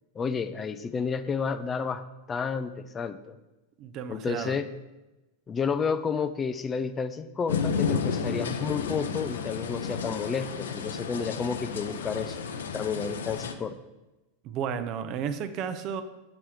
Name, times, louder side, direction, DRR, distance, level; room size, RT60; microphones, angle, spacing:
voice 1, 0.2-3.4 4.1-4.7 5.5-12.4 12.7-13.8, left 5 dB, 20° left, 11 dB, 0.4 m, -31 dB
voice 2, 3.8-4.6 14.4-16.0, right 7 dB, 40° right, 11 dB, 0.6 m, -33 dB
sound 1, 7.5-13.5, left 6 dB, 65° left, 0.6 m, -32 dB
7.1 x 6.9 x 4.8 m, 1.1 s
figure-of-eight pair, 90°, 0 cm